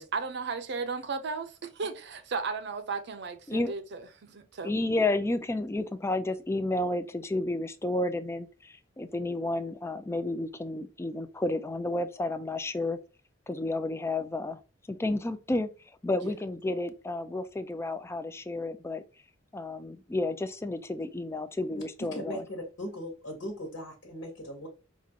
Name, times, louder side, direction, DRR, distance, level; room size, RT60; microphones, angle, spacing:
voice 1, 0.0-4.7 16.2-16.3, right 4 dB, 65° right, 0.6 m, -35 dB
voice 2, 4.6-13.0 13.5-14.6 14.9-15.7 16.0-19.0 19.5-22.4, left 2 dB, 15° left, 0.4 m, -31 dB
voice 3, 22.1-24.7, equal, 70° left, 1.3 m, -38 dB
5.1 x 2.5 x 2.8 m
head